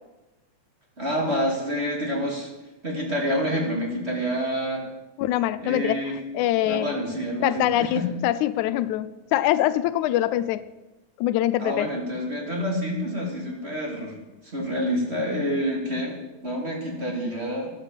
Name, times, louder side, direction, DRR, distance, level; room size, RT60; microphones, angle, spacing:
voice 1, 1.0-2.5 2.8-4.9 5.6-6.2 6.6-8.1 11.6-14.2 14.4-16.2 16.4-17.7, equal, 20° right, -1 dB, 2.8 m, -27 dB
voice 2, 5.2-6.0 6.3-7.0 7.4-10.6 11.2-11.9, left 13 dB, 85° left, 15 dB, 2.1 m, -24 dB
13.5 x 11.5 x 7.4 m, 1.1 s
omnidirectional pair, 3.4 m